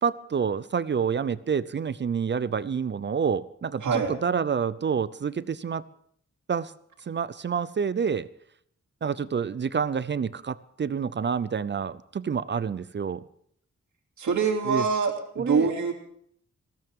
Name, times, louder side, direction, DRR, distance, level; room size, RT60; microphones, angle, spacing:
voice 1, 0.0-5.8 6.5-6.7 7.1-8.3 9.0-13.2 14.7-14.8 15.4-15.7, right 6 dB, 40° right, 17 dB, 0.5 m, -28 dB
voice 2, 14.2-15.9, right 5 dB, 90° right, 1 dB, 2.8 m, -24 dB
20.0 x 16.0 x 3.6 m, 0.66 s
wide cardioid pair, 155°, 29 cm